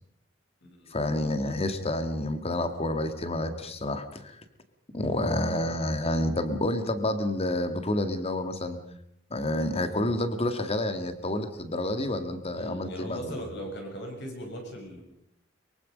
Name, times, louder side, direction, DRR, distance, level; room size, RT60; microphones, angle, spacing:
voice 1, 0.9-4.4 4.9-8.8 9.3-13.4, left 1 dB, 30° left, 9 dB, 2.1 m, -29 dB
voice 2, 12.5-15.0, equal, 60° left, 2 dB, 7.0 m, -38 dB
23.5 x 23.5 x 5.3 m, 0.72 s
head